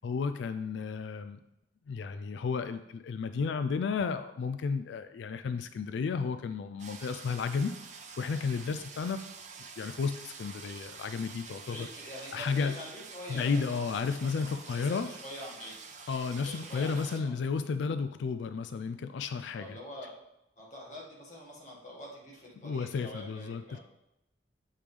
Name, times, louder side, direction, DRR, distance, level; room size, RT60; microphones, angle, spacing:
voice 1, 0.0-1.4 1.9-7.7 8.2-9.2 9.8-11.9 12.3-12.7 13.3-15.1 16.1-19.8 22.6-23.8, left 5 dB, 70° left, 10 dB, 0.3 m, -33 dB
sound 1, 6.8-17.2, right 5 dB, 40° right, 0.6 m, -47 dB
voice 2, 11.6-13.8 14.2-15.8 16.4-17.3 19.5-20.1 20.6-23.8, left 1 dB, 40° left, -3 dB, 1.7 m, -45 dB
7.5 x 5.2 x 3.3 m, 0.85 s
head